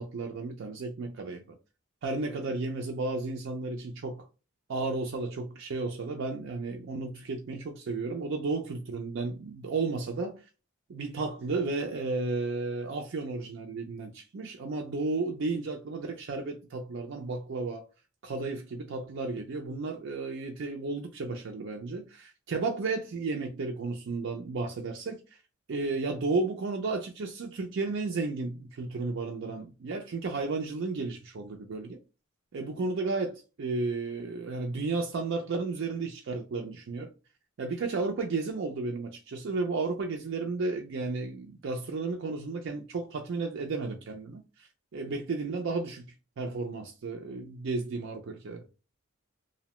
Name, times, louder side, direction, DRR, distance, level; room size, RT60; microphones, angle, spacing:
voice 1, 0.0-1.6 2.0-4.3 4.7-10.4 10.9-17.8 18.2-25.2 25.7-32.0 32.5-37.1 37.6-48.7, right 3 dB, 60° right, 0.4 m, -33 dB
2.7 x 2.0 x 2.9 m
head